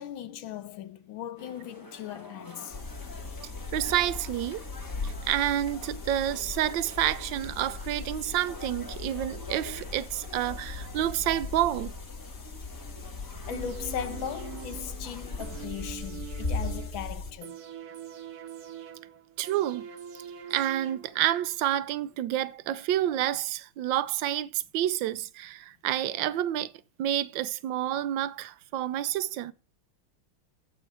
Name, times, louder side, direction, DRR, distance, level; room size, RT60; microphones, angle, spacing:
voice 1, 0.0-2.8 13.5-17.6, left 9 dB, 80° left, 1.6 m, -38 dB
sound 1, 1.4-15.7, left 2 dB, 15° left, 0.8 m, -47 dB
sound 2, 2.7-17.3, left 3 dB, 40° left, 1.6 m, -38 dB
voice 2, 3.7-4.6 5.0-11.9 19.4-19.9 20.5-26.7 27.0-29.5, right 12 dB, 75° right, 1.3 m, -29 dB
sound 3, 13.5-21.5 21.8-21.9, right 9 dB, 55° right, 1.3 m, -44 dB
8.8 x 8.0 x 4.8 m
omnidirectional pair, 2.2 m